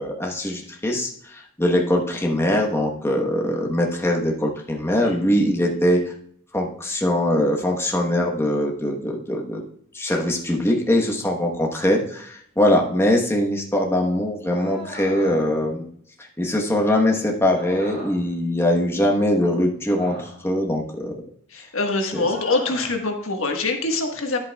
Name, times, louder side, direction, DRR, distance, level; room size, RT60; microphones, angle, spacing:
voice 1, 0.0-6.0 6.5-9.6 9.9-15.9 16.4-21.1, left 1 dB, 10° left, 0 dB, 1.1 m, -22 dB
sound 1, 14.5-15.7 17.5-18.4 19.9-20.6 22.2-23.0, right 1 dB, 30° right, 3.4 m, -39 dB
voice 2, 21.5-24.4, left 3 dB, 75° left, 3 dB, 1.4 m, -24 dB
10.5 x 8.5 x 2.3 m, 0.66 s
head